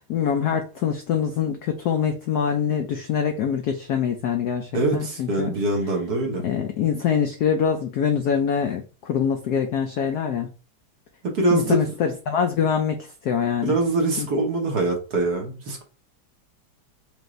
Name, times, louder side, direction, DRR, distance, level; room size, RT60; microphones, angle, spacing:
voice 1, 0.1-5.5 6.4-10.5 11.5-13.8 14.2-14.3, left 7 dB, 75° left, 5 dB, 0.9 m, -24 dB
voice 2, 4.7-6.4 11.2-11.9 13.6-15.8, right 2 dB, 55° right, 0 dB, 1.4 m, -23 dB
4.9 x 2.6 x 3.1 m, 0.36 s
omnidirectional pair, 2.3 m